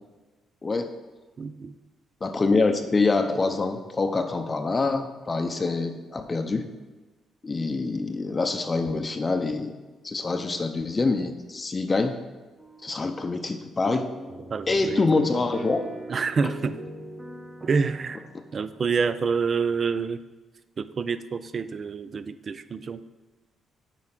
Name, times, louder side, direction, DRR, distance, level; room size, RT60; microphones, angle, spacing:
voice 1, 0.6-0.9 2.2-6.7 7.4-9.8 10.0-12.1 12.8-14.1 14.7-15.8, left 3 dB, 30° left, 6 dB, 0.6 m, -25 dB
voice 2, 1.4-1.7 14.5-15.0 16.1-16.8 17.6-20.2 20.8-23.0, right 5 dB, 45° right, 13 dB, 0.4 m, -27 dB
sound 1, 12.6-13.1 13.4-13.6 13.9-19.1, right 1 dB, 15° right, 0.8 m, -41 dB
7.6 x 4.9 x 5.8 m, 1.2 s
cardioid pair, 90°, 0 cm